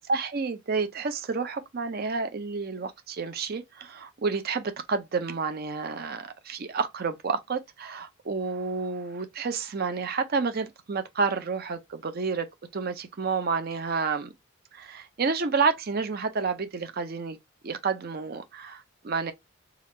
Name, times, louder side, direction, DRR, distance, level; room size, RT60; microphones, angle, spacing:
voice 1, 0.1-12.5 12.7-14.3 14.7-17.4 17.6-19.3, right 4 dB, 45° right, 0.5 m, -30 dB
3.4 x 2.4 x 4.2 m
head